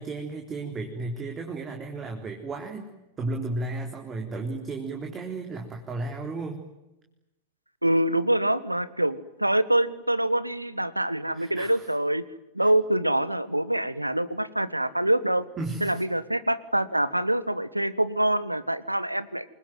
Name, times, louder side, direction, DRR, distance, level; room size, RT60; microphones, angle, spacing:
voice 1, 0.0-2.9 3.2-6.6 11.3-11.9 12.6-12.7 15.6-16.0, right 2 dB, 20° right, 2 dB, 3.8 m, -34 dB
voice 2, 7.8-12.2 12.5-15.4 15.8-19.4, right 1 dB, 85° right, 18 dB, 1.4 m, -25 dB
28.0 x 22.0 x 9.3 m, 0.97 s
figure-of-eight pair, 90°, 0 cm